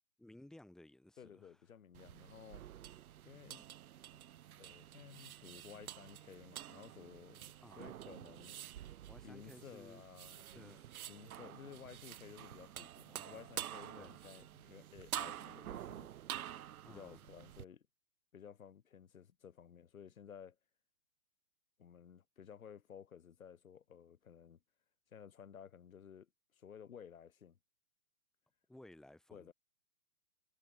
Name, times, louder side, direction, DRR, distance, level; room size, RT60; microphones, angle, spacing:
voice 1, 0.2-1.6 7.6-7.8 9.1-10.0 10.5-10.8 13.1-13.5 13.9-14.1 16.8-17.2 28.7-29.5, left 1 dB, ahead, 4.3 m, -58 dB
voice 2, 1.2-2.6 3.2-3.6 4.6-8.6 9.2-10.8 11.1-16.1 16.9-17.8 18.3-20.6 21.8-24.6 25.1-27.6 29.3-29.5, left 8 dB, 65° left, 4.5 m, -55 dB
sound 1, 1.9-17.6, right 11 dB, 75° right, 0.7 m, -49 dB
hypercardioid pair, 160°, 44 cm